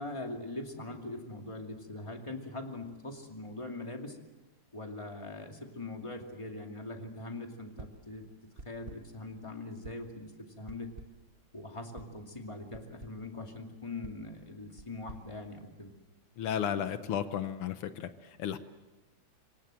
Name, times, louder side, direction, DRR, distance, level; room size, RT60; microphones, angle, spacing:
voice 1, 0.0-4.2 4.7-8.3 8.6-10.9 11.5-15.9, left 2 dB, 15° left, 3 dB, 2.4 m, -42 dB
sound 1, 7.8-8.1 8.6-9.2 9.8-10.2 10.7-11.3 12.0-12.2 12.7-13.3 14.0-16.1, right 2 dB, 30° right, 1.2 m, -51 dB
voice 2, 16.4-18.6, left 9 dB, 80° left, 11 dB, 1.9 m, -34 dB
26.5 x 24.5 x 7.6 m, 1.1 s
omnidirectional pair, 2.4 m